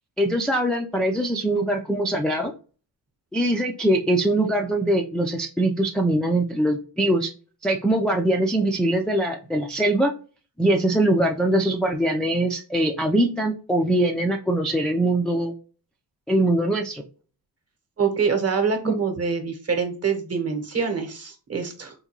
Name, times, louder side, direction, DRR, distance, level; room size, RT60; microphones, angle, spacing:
voice 1, 0.2-2.5 3.3-7.3 7.6-10.1 10.6-15.5 16.3-17.0 18.8-19.0, right 1 dB, ahead, 1 dB, 0.3 m, -22 dB
voice 2, 18.0-21.9, right 5 dB, 35° right, 5 dB, 1.0 m, -25 dB
3.7 x 2.2 x 2.9 m, 0.37 s
cardioid pair, 80°, 42 cm